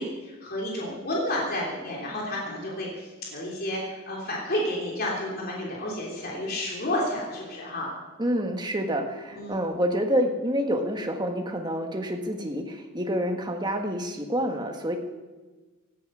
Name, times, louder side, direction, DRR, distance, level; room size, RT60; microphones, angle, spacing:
voice 1, 0.0-7.9 9.3-9.6, left 1 dB, 45° left, -3 dB, 3.3 m, -31 dB
voice 2, 8.2-15.0, equal, 20° right, 3 dB, 1.6 m, -28 dB
17.0 x 13.5 x 6.3 m, 1.3 s
head